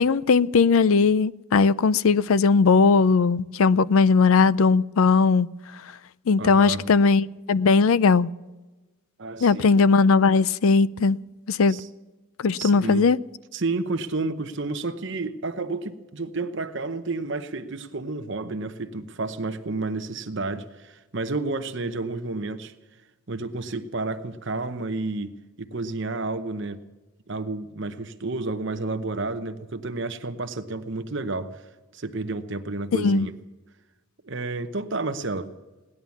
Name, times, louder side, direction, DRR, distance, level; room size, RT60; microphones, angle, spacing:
voice 1, 0.0-5.5 6.3-8.3 9.4-11.2 11.5-11.8 12.4-13.2 32.9-33.3, left 4 dB, 70° left, 0.4 m, -19 dB
voice 2, 6.4-6.8 9.2-9.7 11.7-11.9 12.6-13.1 13.5-22.7 23.3-26.8 27.3-31.6 31.9-33.3 34.2-35.5, right 3 dB, 55° right, 0.9 m, -31 dB
17.5 x 11.0 x 7.1 m
head